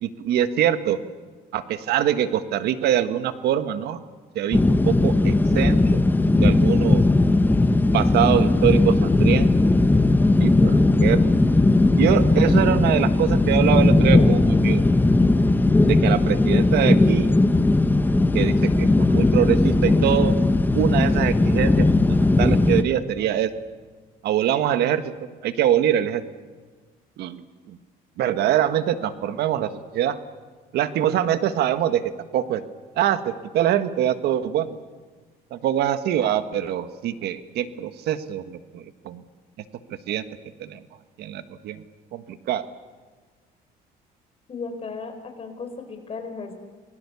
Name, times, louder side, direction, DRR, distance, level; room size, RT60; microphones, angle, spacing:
voice 1, 0.0-1.0 1.5-4.0 4.3-6.0 6.3-7.0 7.9-9.5 10.1-11.3 12.0-14.8 15.9-17.3 18.3-20.3 20.7-23.5 24.2-25.0 25.4-26.2 27.2-27.8 28.2-30.2 30.7-32.0 32.3-32.6 33.0-34.8 35.5-39.2 39.9-40.2 40.6-40.8 41.2-41.8 42.1-42.6, right 10 dB, 75° right, 11 dB, 1.6 m, -24 dB
sound 1, 4.5-22.8, left 2 dB, 10° left, 1.0 m, -18 dB
voice 2, 44.5-46.5, left 4 dB, 35° left, 6 dB, 4.9 m, -35 dB
28.5 x 20.5 x 7.1 m, 1.4 s
cardioid pair, 110°, 17 cm